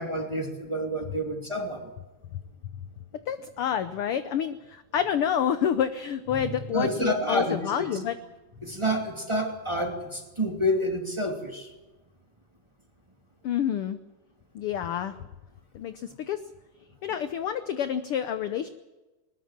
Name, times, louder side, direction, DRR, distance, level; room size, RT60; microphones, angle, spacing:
voice 1, 0.0-1.8 6.3-7.9 8.6-11.7, equal, 10° right, 2 dB, 2.4 m, -29 dB
voice 2, 3.3-8.2 13.4-14.0 14.5-15.1 15.7-16.4 17.0-18.7, left 9 dB, 75° left, 11 dB, 1.3 m, -28 dB
21.0 x 21.0 x 7.4 m, 1.1 s
omnidirectional pair, 3.5 m